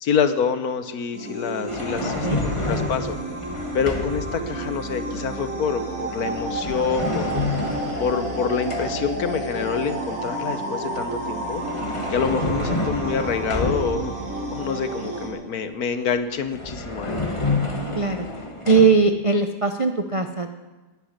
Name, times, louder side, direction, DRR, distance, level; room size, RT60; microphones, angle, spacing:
voice 1, 0.0-3.2 3.7-7.4 8.0-11.6 12.1-17.2, left 6 dB, 70° left, 10 dB, 1.5 m, -26 dB
sound 1, 1.1-15.3, right 2 dB, 65° right, 4.1 m, -31 dB
sound 2, 1.7-4.4 6.3-9.2 11.3-14.2 16.1-16.2 16.5-18.9, left 2 dB, 20° left, 1.5 m, -29 dB
voice 2, 2.0-2.4 17.9-18.3 18.7-20.5, right 4 dB, 45° right, 5 dB, 0.4 m, -20 dB
19.5 x 10.0 x 6.6 m, 1.2 s
omnidirectional pair, 1.6 m